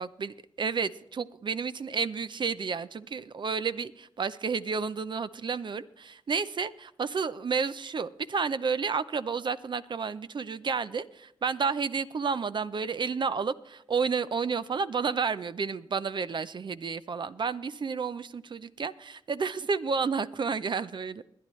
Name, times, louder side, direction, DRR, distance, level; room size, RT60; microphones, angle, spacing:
voice 1, 0.0-21.2, right 5 dB, 55° right, 14 dB, 0.6 m, -31 dB
21.0 x 10.0 x 3.2 m, 0.76 s
cardioid pair, 50°, 10 cm